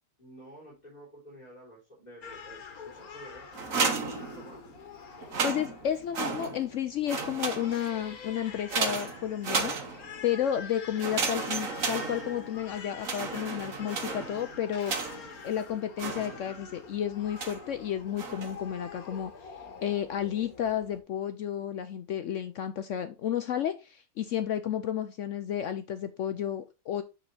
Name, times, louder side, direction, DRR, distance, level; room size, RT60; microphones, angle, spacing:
voice 1, 0.2-4.7, equal, 30° left, -7 dB, 4.0 m, -50 dB
Crying sobbing, 2.2-21.0, left 5 dB, 90° left, 1.6 m, -46 dB
sound 1, 3.5-4.8 5.2-6.8 7.1-8.0 8.7-10.3 11.0-12.6 13.0-15.4 16.0-16.7 17.4-17.7 18.2-18.7, right 4 dB, 70° right, 1.6 m, -33 dB
voice 2, 5.4-9.8 10.2-14.9 15.4-19.5 19.8-27.0, left 10 dB, 65° left, 9 dB, 0.9 m, -32 dB
9.1 x 4.2 x 3.9 m, 0.27 s
omnidirectional pair, 1.5 m